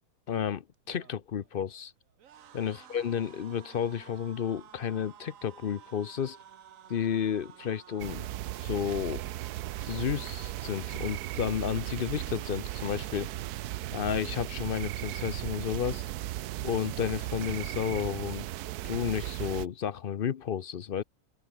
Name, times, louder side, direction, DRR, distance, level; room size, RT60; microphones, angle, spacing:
voice 1, 0.3-1.9 2.5-6.4 6.9-8.3 8.6-9.2 9.8-13.3 13.9-16.0 16.6-18.5 18.8-21.0, left 8 dB, 50° left, 0.6 m, -32 dB
sound 1, 0.7-15.9 16.3-16.5 16.8-17.6, right 9 dB, 60° right, 1.3 m, -55 dB
sound 2, 8.0-19.7, right 14 dB, 85° right, 1.2 m, -36 dB
omnidirectional pair, 1.6 m